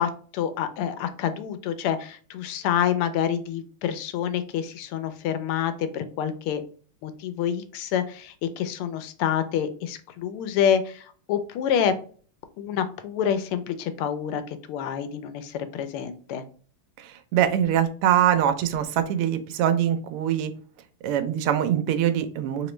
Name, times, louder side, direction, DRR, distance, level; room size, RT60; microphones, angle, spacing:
voice 1, 0.0-6.6 7.0-11.9 12.6-16.4, left 9 dB, 85° left, 10 dB, 1.5 m, -27 dB
voice 2, 17.0-20.5 21.0-22.7, right 10 dB, 90° right, 10 dB, 1.5 m, -23 dB
3.8 x 2.9 x 3.1 m, 0.43 s
omnidirectional pair, 2.4 m